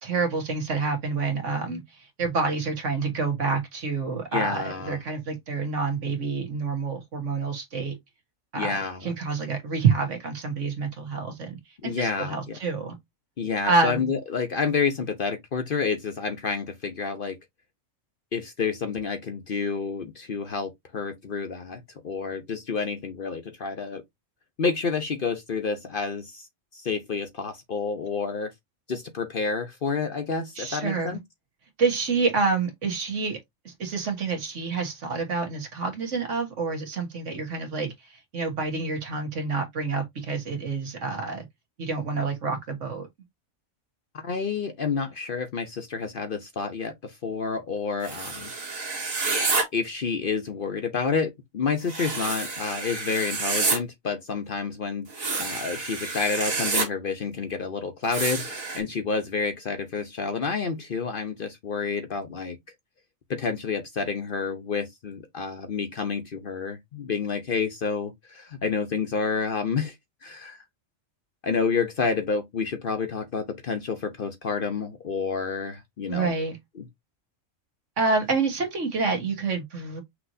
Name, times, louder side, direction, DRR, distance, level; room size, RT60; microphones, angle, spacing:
voice 1, 0.0-1.8 2.2-7.9 8.5-13.0 13.6-14.1 30.6-31.2 31.8-33.4 33.6-41.5 41.8-43.1 76.1-76.6 78.0-80.0, right 4 dB, 65° right, 1.6 m, -28 dB
voice 2, 4.3-5.0 8.6-9.1 11.8-12.6 13.4-17.4 18.3-24.0 24.6-26.5 26.7-28.5 28.9-31.2 44.2-48.5 49.7-55.1 55.4-62.6 63.3-69.9 70.2-70.6 71.4-76.3, left 5 dB, 50° left, 0.8 m, -29 dB
sound 1, 48.0-49.6 51.9-53.8 55.1-56.8 58.1-58.8, right 3 dB, 90° right, 2.1 m, -28 dB
5.9 x 3.0 x 2.6 m
omnidirectional pair, 1.4 m